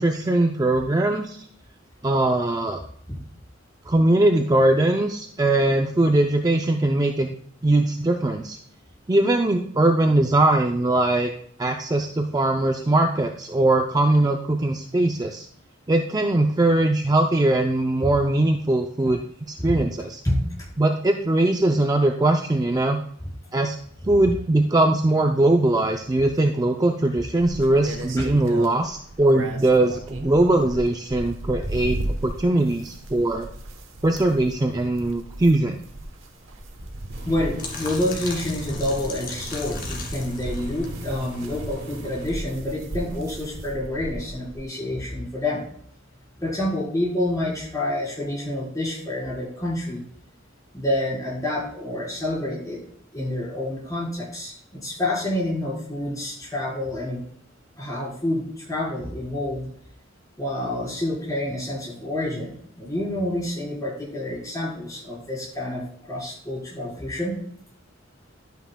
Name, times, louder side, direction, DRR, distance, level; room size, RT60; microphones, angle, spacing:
voice 1, 0.0-1.5 2.0-2.8 3.9-7.3 7.6-8.6 9.1-11.3 11.6-15.5 15.9-19.2 19.5-20.2 20.8-23.0 23.5-23.8 24.0-32.0 32.2-33.5 34.0-35.8, right 2 dB, 20° right, 4 dB, 0.4 m, -21 dB
sound 1, 27.4-44.6, right 1 dB, 90° right, 1.1 m, -36 dB
Engine, 37.1-42.3, right 1 dB, 55° right, 2.1 m, -39 dB
voice 2, 37.2-45.6 46.4-50.0 50.7-52.8 53.1-57.2 57.8-59.7 60.4-67.4, left 1 dB, 15° left, -6 dB, 4.1 m, -28 dB
sound 2, 37.6-42.6, left 3 dB, 50° left, 2.1 m, -38 dB
11.5 x 9.1 x 2.2 m, 0.63 s
head